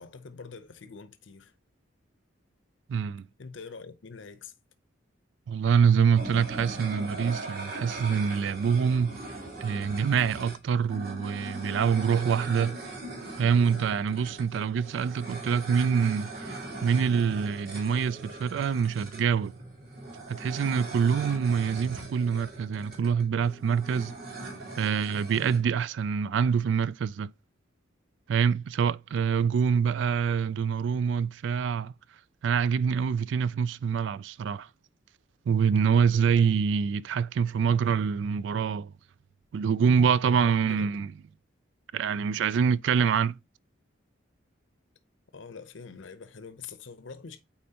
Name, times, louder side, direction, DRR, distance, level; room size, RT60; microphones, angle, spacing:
voice 1, 0.0-1.5 3.4-4.5 40.7-41.0 45.3-47.4, left 5 dB, 75° left, 0.7 m, -45 dB
voice 2, 2.9-3.2 5.5-9.2 9.6-12.8 13.4-19.5 20.3-24.1 24.8-27.3 28.3-31.9 32.4-34.7 35.5-38.9 39.5-41.1 41.9-43.4, right 6 dB, 70° right, 0.3 m, -25 dB
sound 1, 6.1-25.6, right 2 dB, 50° right, 3.0 m, -40 dB
8.6 x 4.3 x 2.8 m
head